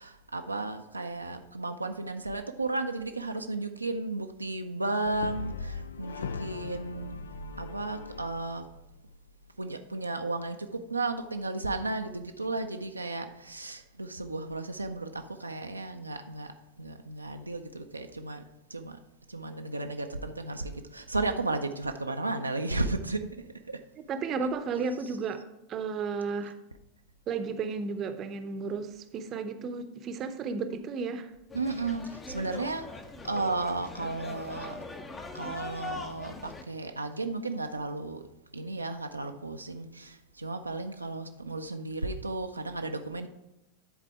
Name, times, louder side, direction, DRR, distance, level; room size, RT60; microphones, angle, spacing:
voice 1, 0.0-7.2 7.6-8.7 9.6-16.5 16.8-18.4 18.7-19.0 19.3-23.3 23.7-23.8 25.0-25.2 31.5-32.9 33.2-34.8 35.3-38.2 38.5-43.3, right 2 dB, 80° right, 5 dB, 0.5 m, -34 dB
Brass instrument, 5.0-9.3, left 4 dB, 65° left, 0.4 m, -39 dB
voice 2, 24.1-25.4 25.7-26.5 27.3-31.3, right 5 dB, 30° right, 9 dB, 0.7 m, -33 dB
sound 1, 31.5-36.6, left 3 dB, 20° left, 0.7 m, -42 dB
10.0 x 4.1 x 4.7 m, 0.90 s
figure-of-eight pair, 90°, 0 cm